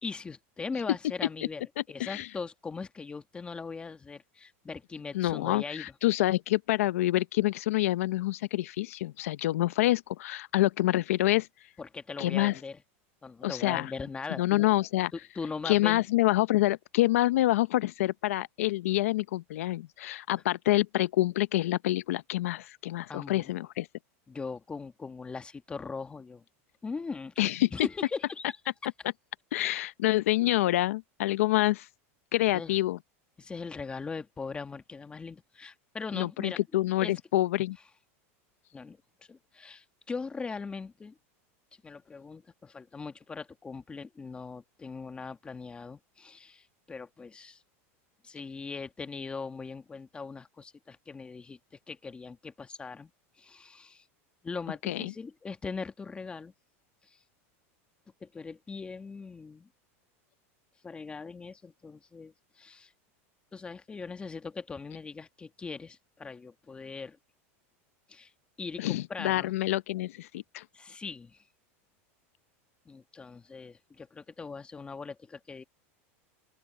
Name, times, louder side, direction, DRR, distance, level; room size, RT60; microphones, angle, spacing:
voice 1, 0.0-5.9 11.8-12.8 13.2-14.7 15.1-16.0 23.1-23.5 24.3-26.4 26.8-28.6 32.5-32.8 33.4-36.6 37.0-37.1 38.7-39.0 39.3-41.2 41.8-47.6 48.2-53.1 53.4-54.1 54.4-56.5 57.0-57.2 58.2-59.7 60.8-62.9 63.5-67.2 68.1-68.3 68.6-69.5 70.7-71.4 72.8-75.6, left 4 dB, 15° left, 1.5 m, -40 dB
voice 2, 5.1-11.5 12.2-12.6 13.4-13.9 14.4-15.1 15.6-23.9 27.4-27.7 29.5-31.9 32.3-33.0 36.1-37.8 54.9-55.1 68.8-70.6, left 16 dB, 85° left, 0.7 m, -27 dB
open air
supercardioid pair, 140°, 7 cm